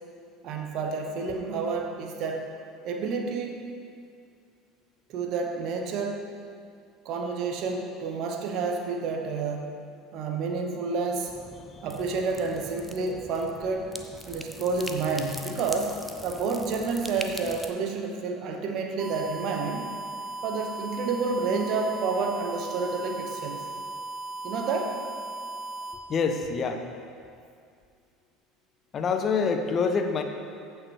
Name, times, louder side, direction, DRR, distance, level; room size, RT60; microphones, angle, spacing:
voice 1, 0.4-2.5 2.8-3.6 5.1-6.2 7.0-9.7 10.1-11.4 11.8-13.9 14.3-19.9 20.4-23.6 24.4-25.0, right 4 dB, 50° right, 3 dB, 1.0 m, -29 dB
sound 1, 11.3-17.7, equal, ahead, 0.7 m, -42 dB
sound 2, 19.0-26.0, right 3 dB, 20° right, 1.2 m, -37 dB
voice 2, 26.1-26.8 28.9-30.2, left 5 dB, 35° left, 6 dB, 0.7 m, -26 dB
14.5 x 6.4 x 3.2 m, 2.2 s
figure-of-eight pair, 65°, 0 cm